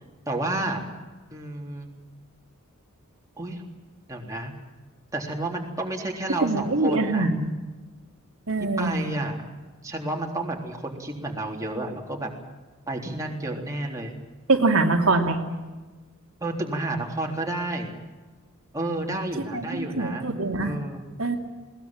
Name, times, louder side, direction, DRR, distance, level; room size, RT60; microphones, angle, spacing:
voice 1, 0.3-0.9 1.3-1.9 3.4-3.6 4.1-4.5 5.1-7.3 8.8-9.4 9.8-12.3 12.9-14.1 16.4-17.9 18.7-20.3 20.6-21.0, right 2 dB, 15° right, -1 dB, 3.7 m, -30 dB
voice 2, 6.4-7.5 8.5-9.0 14.5-15.4 19.5-20.8 21.2-21.4, right 3 dB, 75° right, 2 dB, 2.6 m, -23 dB
21.0 x 19.5 x 9.0 m, 1.3 s
head